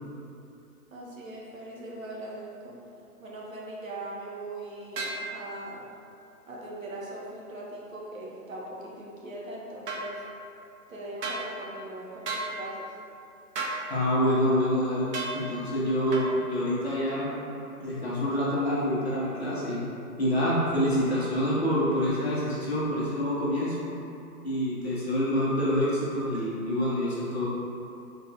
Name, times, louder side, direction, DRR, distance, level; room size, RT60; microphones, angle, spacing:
voice 1, 0.9-2.7 3.2-5.9 6.5-10.2 10.9-12.9, right 1 dB, 55° right, -4 dB, 0.7 m, -40 dB
sound 1, 5.0-5.2 9.9-10.0 11.2-11.4 12.3-12.5 13.6-13.8 15.1-15.4 16.1-16.3, right 3 dB, 90° right, 0.8 m, -32 dB
voice 2, 13.9-17.3 17.8-19.8 20.2-23.8 24.4-27.5, equal, 45° left, -8 dB, 0.6 m, -27 dB
4.0 x 2.3 x 2.7 m, 2.7 s
hypercardioid pair, 180°, 47 cm